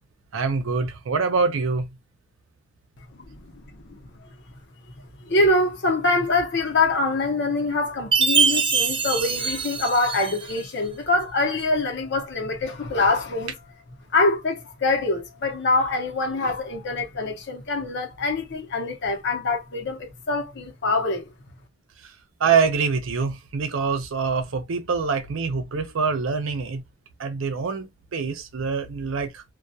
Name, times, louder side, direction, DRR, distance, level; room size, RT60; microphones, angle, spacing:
voice 1, 0.3-2.0 22.0-22.1 22.4-26.8 27.2-29.4, right 5 dB, 90° right, 0.5 m, -25 dB
voice 2, 4.9-13.5 14.1-21.3, left 2 dB, 60° left, 0.8 m, -24 dB
Chime, 8.1-10.6, right 5 dB, 25° right, 0.4 m, -23 dB
2.2 x 2.2 x 2.6 m
head